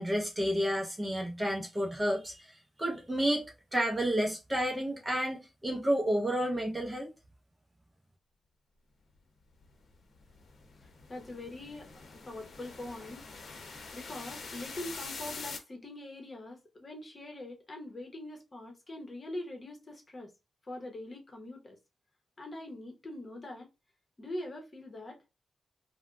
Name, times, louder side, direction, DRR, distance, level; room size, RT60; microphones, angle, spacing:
voice 1, 0.0-7.1, equal, 15° right, 0.6 m, -31 dB
sound 1, 9.6-15.6, left 4 dB, 65° left, 0.8 m, -45 dB
voice 2, 10.8-11.9 12.2-13.3 13.9-20.3 20.7-21.8 22.4-23.7 24.2-25.2, left 1 dB, 30° left, 1.0 m, -43 dB
3.3 x 2.1 x 2.5 m
wide cardioid pair, 120°, 0 cm